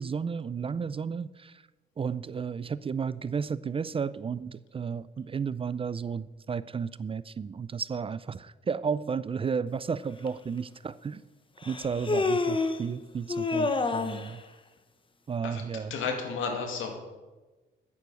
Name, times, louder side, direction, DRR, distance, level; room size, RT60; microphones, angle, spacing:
voice 1, 0.0-1.6 2.0-11.2 11.7-14.4 15.3-15.9, right 6 dB, 30° right, 17 dB, 0.4 m, -33 dB
Human voice, 10.3-10.4 11.6-12.8 13.3-14.3, left 3 dB, 25° left, 1.0 m, -28 dB
voice 2, 15.9-16.9, left 5 dB, 80° left, 3 dB, 2.4 m, -32 dB
9.6 x 9.5 x 6.3 m, 1.2 s
cardioid pair, 90°, 20 cm